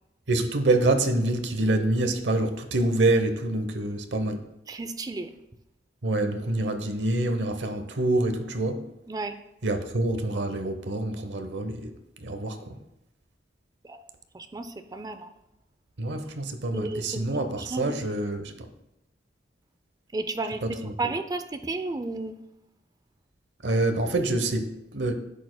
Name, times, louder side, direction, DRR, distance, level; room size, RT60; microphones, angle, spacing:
voice 1, 0.3-4.4 6.0-8.8 9.6-11.9 12.2-12.7 16.0-18.5 20.6-20.9 23.6-25.1, right 2 dB, 75° right, 7 dB, 0.8 m, -26 dB
voice 2, 4.7-5.3 9.1-9.3 13.8-14.0 14.3-15.3 16.7-17.3 17.6-17.9 20.1-22.4, right 2 dB, 20° right, 9 dB, 0.4 m, -33 dB
11.0 x 8.4 x 2.2 m, 0.87 s
head